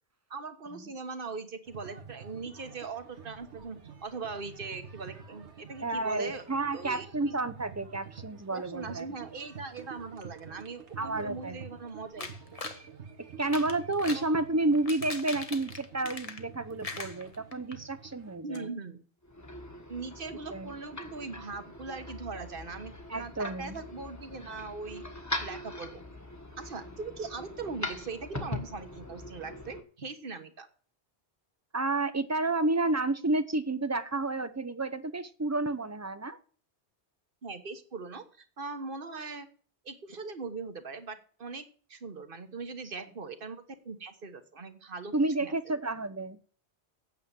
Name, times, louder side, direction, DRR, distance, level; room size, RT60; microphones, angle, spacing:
voice 1, 0.3-6.4 6.7-7.3 8.5-12.3 14.1-14.2 18.4-19.0 19.9-25.0 25.4-26.0 26.6-30.7 37.4-39.5 39.8-45.1 45.4-45.5, right 4 dB, 50° right, 8 dB, 1.4 m, -40 dB
sound 1, 1.7-18.4, right 6 dB, 80° right, 1.6 m, -48 dB
voice 2, 5.8-9.1 11.0-11.6 13.4-18.7 20.5-20.7 23.1-23.8 31.7-36.4 45.1-46.4, right 2 dB, 15° right, 12 dB, 0.7 m, -30 dB
sound 2, 12.2-12.8 13.4-14.3 14.7-16.5 16.8-17.7 18.1-18.2 18.5-18.6, left 3 dB, 35° left, 1.2 m, -40 dB
sound 3, 19.2-29.8, left 1 dB, 15° left, 1.5 m, -41 dB
9.1 x 7.6 x 7.5 m, 0.43 s
omnidirectional pair, 1.2 m